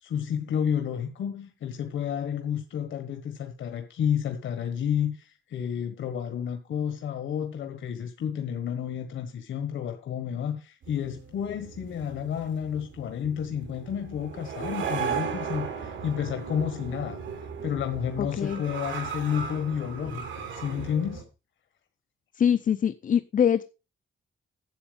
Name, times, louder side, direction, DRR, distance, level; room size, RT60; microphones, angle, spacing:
voice 1, 0.0-17.2 17.6-20.2 20.5-21.2, left 8 dB, 90° left, 1.5 m, -31 dB
sound 1, 10.8-21.2, right 7 dB, 75° right, 3.5 m, -36 dB
voice 2, 18.2-18.6 22.3-23.6, left 8 dB, 45° left, 0.5 m, -24 dB
11.5 x 7.9 x 5.3 m
wide cardioid pair, 140°, 19 cm